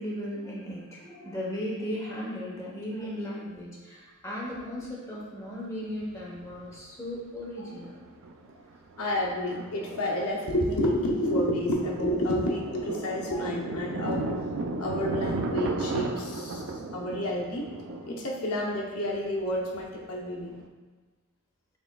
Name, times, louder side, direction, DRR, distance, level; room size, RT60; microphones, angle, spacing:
voice 1, 0.0-8.1 8.5-8.6, equal, 15° left, -5 dB, 0.9 m, -36 dB
Thunder, 4.6-4.7 6.0-6.8 7.1-7.2 7.6-7.9 8.2-20.6, right 3 dB, 60° right, 0.4 m, -36 dB
voice 2, 9.0-14.5 14.8-17.7 18.1-20.6, left 1 dB, 75° left, -1 dB, 0.7 m, -30 dB
7.0 x 3.3 x 2.2 m, 1.3 s
head